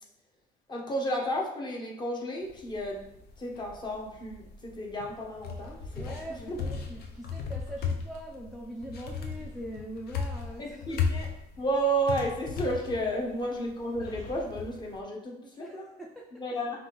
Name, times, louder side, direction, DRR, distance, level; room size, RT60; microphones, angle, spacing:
voice 1, 0.7-3.0 3.4-6.6 10.6-11.3 11.6-15.8 16.4-16.8, right 1 dB, 25° left, -1 dB, 1.0 m, -32 dB
sound 1, 2.4-15.0, left 5 dB, 65° left, 0.7 m, -37 dB
voice 2, 6.0-11.1 13.4-13.5 15.4-16.4, right 1 dB, ahead, 0 dB, 0.3 m, -42 dB
5.5 x 2.5 x 3.0 m, 0.85 s
cardioid pair, 110°, 17 cm